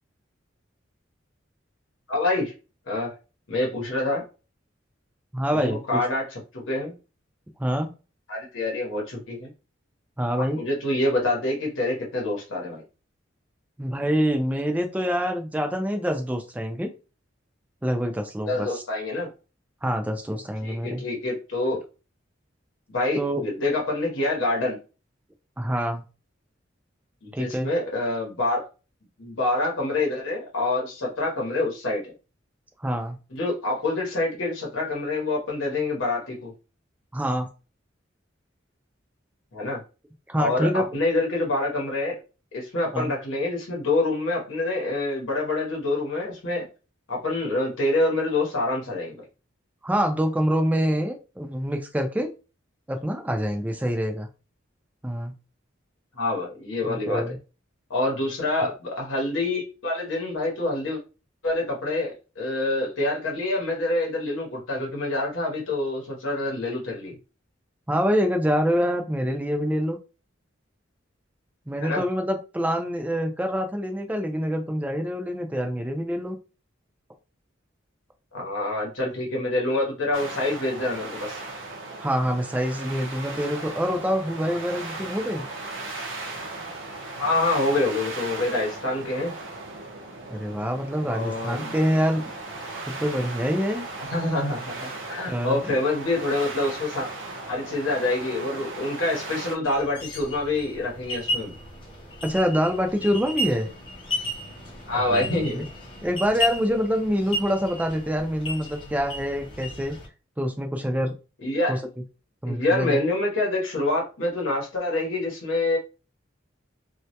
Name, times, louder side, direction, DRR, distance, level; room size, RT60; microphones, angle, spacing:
voice 1, 2.1-2.5 2.9-3.1 3.5-4.2 5.5-6.9 8.3-9.5 10.4-12.8 18.5-19.3 20.6-21.8 22.9-24.8 27.2-28.7 29.2-32.1 33.3-36.5 39.5-39.8 40.4-42.2 42.5-46.6 47.1-49.3 56.2-57.3 57.9-61.0 61.4-67.2 71.8-72.0 78.3-81.4 87.2-89.3 91.1-91.7 94.0-97.1 97.5-101.5 104.8-105.6 111.4-111.8 112.5-115.8, left 2 dB, 80° left, -1 dB, 0.8 m, -26 dB
voice 2, 5.3-6.0 7.6-7.9 10.2-10.6 13.8-16.9 17.8-18.8 19.8-21.0 23.2-23.4 25.6-26.0 27.3-27.7 32.8-33.2 37.1-37.5 40.3-40.9 42.9-43.1 49.8-52.3 52.9-54.3 55.0-55.3 56.8-57.4 67.9-70.0 71.7-76.4 82.0-85.4 90.3-92.2 92.9-93.9 95.3-95.6 102.2-103.7 104.9-105.6 106.0-110.0 110.4-111.1 111.7-111.8 112.4-113.0, equal, 10° right, 4 dB, 0.3 m, -26 dB
sound 1, 80.1-99.6, right 2 dB, 70° right, 0.6 m, -37 dB
sound 2, 99.6-110.1, left 1 dB, 25° left, 0.7 m, -34 dB
2.2 x 2.1 x 2.7 m, 0.32 s
head